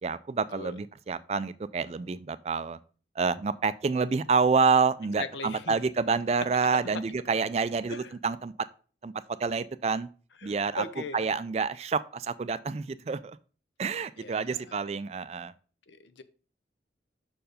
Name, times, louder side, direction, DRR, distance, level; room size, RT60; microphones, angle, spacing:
voice 1, 0.0-2.8 3.2-8.5 9.0-9.1 9.4-10.1 10.4-10.8 11.1-13.4 13.8-15.5, right 5 dB, 35° right, 0.3 m, -28 dB
voice 2, 5.2-5.7 7.9-8.1 10.4-11.3 14.2-14.8 15.9-16.2, left 3 dB, 80° left, 0.7 m, -39 dB
6.5 x 4.7 x 5.0 m
head